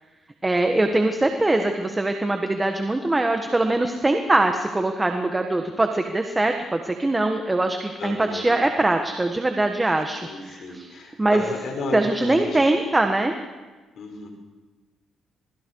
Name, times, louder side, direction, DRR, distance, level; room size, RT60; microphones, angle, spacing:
voice 1, 0.4-10.9 11.2-11.4 11.9-13.3, right 2 dB, 15° right, 5 dB, 1.6 m, -22 dB
voice 2, 8.0-8.6 10.2-12.7 13.9-14.3, left 3 dB, 65° left, 3 dB, 5.8 m, -33 dB
27.5 x 22.0 x 4.8 m, 1.3 s
cardioid pair, 90°, 0 cm